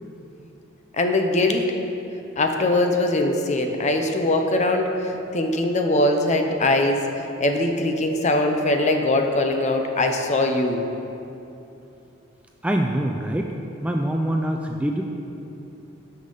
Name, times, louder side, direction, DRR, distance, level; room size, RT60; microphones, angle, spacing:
voice 1, 0.9-1.8 2.4-10.8, left 2 dB, 35° left, 4 dB, 0.7 m, -22 dB
voice 2, 12.6-13.5 13.8-15.0, right 1 dB, 5° right, 2 dB, 0.3 m, -24 dB
12.5 x 5.5 x 3.9 m, 2.8 s
head